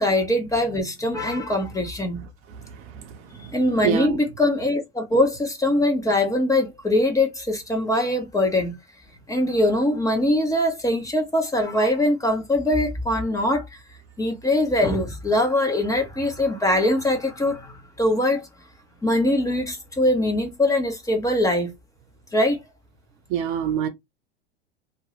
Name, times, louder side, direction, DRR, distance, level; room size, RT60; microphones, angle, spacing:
voice 1, 0.0-2.2 3.5-8.8 9.3-13.8 14.2-18.5 19.0-21.7 22.3-22.6, left 1 dB, 10° left, 0.8 m, -22 dB
voice 2, 2.8-3.6 3.8-4.2 23.3-23.9, right 9 dB, 45° right, 0.8 m, -26 dB
2.5 x 2.2 x 3.2 m
hypercardioid pair, 95°, 31 cm